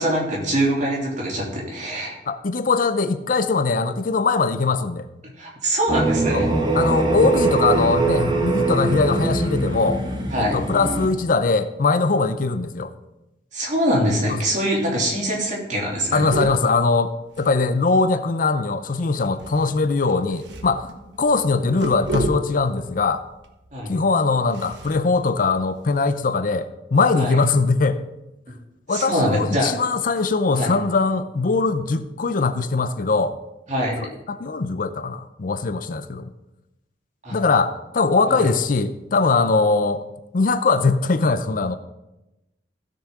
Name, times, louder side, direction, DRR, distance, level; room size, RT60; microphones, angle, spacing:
voice 1, 0.0-2.2 5.4-6.5 10.3-10.5 13.5-16.3 23.7-24.0 27.2-27.3 28.5-28.6 28.9-29.7 30.5-30.7 33.7-34.1 37.2-37.4 38.3-38.5, equal, 45° right, -2 dB, 2.9 m, -23 dB
voice 2, 2.3-5.1 6.3-6.4 6.7-10.0 10.4-12.9 16.1-20.9 21.2-23.2 23.9-28.0 28.9-33.4 34.0-36.3 37.3-40.0 40.3-41.8, left 4 dB, 50° left, 11 dB, 0.5 m, -21 dB
sound 1, 5.9-11.1, right 3 dB, 25° right, 1.3 m, -22 dB
sound 2, 14.1-14.6 14.9-15.0 15.2-15.5 15.8-18.1 19.2-26.2, right 1 dB, 85° right, 1.2 m, -34 dB
15.5 x 6.9 x 3.7 m, 0.94 s
head